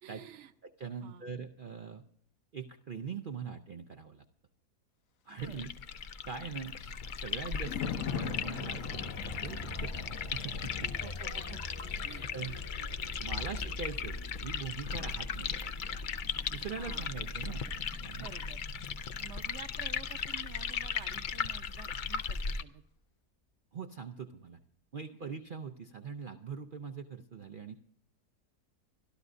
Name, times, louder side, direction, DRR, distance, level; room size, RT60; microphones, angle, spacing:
voice 1, 0.0-0.5 1.0-1.3 5.3-5.6 11.0-11.6 12.0-12.9 13.3-13.6 14.9-15.0 16.6-17.1 18.1-18.6 19.2-22.8 25.2-25.4, right 9 dB, 55° right, 10 dB, 1.0 m, -51 dB
voice 2, 0.8-2.0 2.5-4.2 5.3-5.7 6.3-9.1 9.4-11.1 11.9-12.6 13.2-16.0 16.5-17.6 18.0-18.3 23.7-24.6 24.9-27.8, right 6 dB, 80° right, 5 dB, 0.4 m, -42 dB
sound 1, 5.4-22.6, left 6 dB, 90° left, 0.4 m, -38 dB
Thunder, 5.9-20.4 20.7-21.0, left 8 dB, 60° left, 1.1 m, -45 dB
sound 2, 8.0-21.7 22.2-22.3, left 1 dB, 25° left, 0.7 m, -46 dB
25.0 x 12.0 x 2.6 m, 0.72 s
omnidirectional pair, 1.7 m